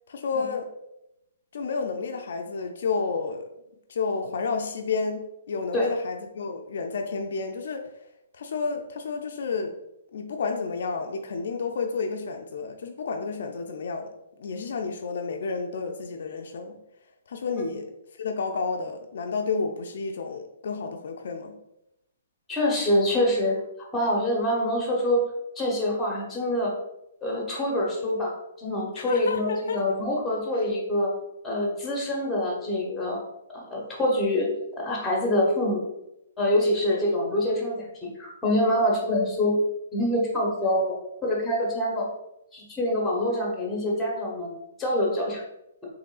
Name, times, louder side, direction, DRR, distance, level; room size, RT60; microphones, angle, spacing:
voice 1, 0.1-0.7 1.5-3.4 3.9-7.9 8.3-9.7 10.1-14.1 14.4-16.8 17.3-17.9 18.2-21.6 29.0-29.8 36.9-37.0, left 4 dB, 65° left, 4 dB, 0.3 m, -30 dB
voice 2, 22.5-23.5 23.9-25.2 25.6-26.7 27.2-31.1 31.4-33.2 33.5-34.5 34.8-35.8 36.4-37.8 38.2-39.6 39.9-42.1 42.5-44.5 44.8-45.4, left 1 dB, 5° left, -3 dB, 0.8 m, -25 dB
3.6 x 3.1 x 2.3 m, 0.85 s
hypercardioid pair, 160°, 0 cm